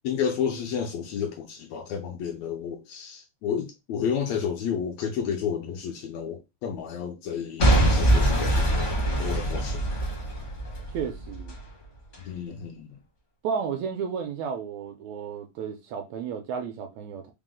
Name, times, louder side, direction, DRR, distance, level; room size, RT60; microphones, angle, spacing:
voice 1, 0.0-9.8 12.2-13.0, left 7 dB, 80° left, 1.7 m, -31 dB
Boom / Shatter / Crushing, 7.6-11.6 12.1-12.2, right 1 dB, 50° left, 0.8 m, -23 dB
voice 2, 10.9-11.6 13.4-17.3, right 6 dB, 80° right, 1.7 m, -32 dB
4.8 x 2.0 x 3.7 m
omnidirectional pair, 3.4 m